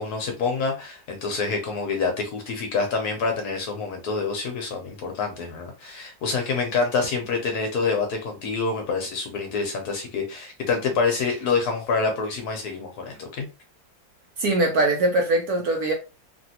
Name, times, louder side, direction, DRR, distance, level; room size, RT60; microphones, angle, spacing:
voice 1, 0.0-13.5, left 4 dB, 70° left, 1.0 m, -27 dB
voice 2, 14.4-15.9, right 2 dB, 70° right, 0.9 m, -21 dB
3.0 x 2.6 x 2.7 m
omnidirectional pair, 2.0 m